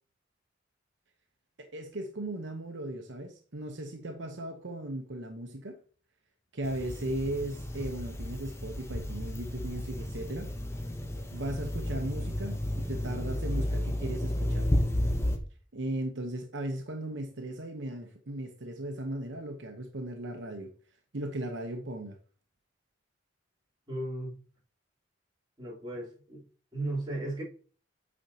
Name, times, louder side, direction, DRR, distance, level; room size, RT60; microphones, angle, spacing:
voice 1, 1.6-5.8 6.5-10.5 11.3-14.7 15.7-20.7 21.1-22.2, right 1 dB, 70° right, 1.0 m, -37 dB
sound 1, 6.6-15.4, left 1 dB, 15° left, 0.8 m, -32 dB
voice 2, 23.9-24.3 25.6-26.4 26.7-27.4, right 1 dB, 25° right, 3.4 m, -35 dB
8.7 x 5.2 x 2.8 m
head